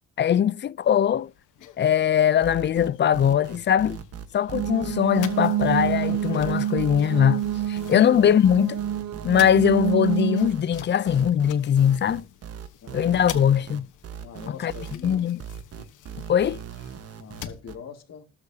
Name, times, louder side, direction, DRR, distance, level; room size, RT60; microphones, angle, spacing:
voice 1, 0.2-1.3 1.8-4.0 4.3-8.8 9.2-12.3 12.9-13.9 14.6-14.7 15.0-15.4 16.3-16.6, left 9 dB, 40° left, 0.5 m, -21 dB
sound 1, 0.8-17.6, left 11 dB, 85° left, 1.2 m, -47 dB
sound 2, 2.4-17.8, right 8 dB, 50° right, 1.3 m, -39 dB
sound 3, 4.5-10.5, right 10 dB, 70° right, 0.8 m, -27 dB
voice 2, 14.2-15.3 17.2-18.3, left 7 dB, 60° left, 2.2 m, -42 dB
20.0 x 6.8 x 2.8 m
cardioid pair, 90°, 30 cm